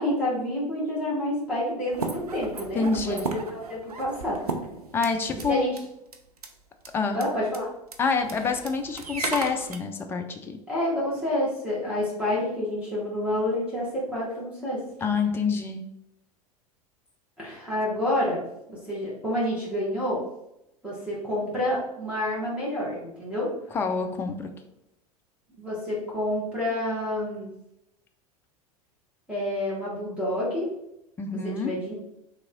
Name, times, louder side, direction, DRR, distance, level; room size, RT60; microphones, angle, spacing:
voice 1, 0.0-4.5 5.5-5.8 7.1-7.7 10.7-14.8 17.4-18.4 18.7-20.2 20.8-23.5 25.6-27.5 29.3-30.7 31.6-31.9, left 1 dB, 5° right, -8 dB, 1.4 m, -28 dB
sound 1, 1.9-5.5 5.8-5.9 6.1-6.5 6.8-6.9 7.1-7.3 7.5-7.6 7.9-9.8, right 3 dB, 80° right, 0.5 m, -35 dB
voice 2, 2.7-3.3 4.9-5.6 6.9-7.2 8.0-10.6 15.0-15.8 23.7-24.5 31.2-31.8, left 4 dB, 10° left, 5 dB, 0.4 m, -27 dB
3.4 x 3.0 x 3.7 m, 0.84 s
figure-of-eight pair, 80°, 19 cm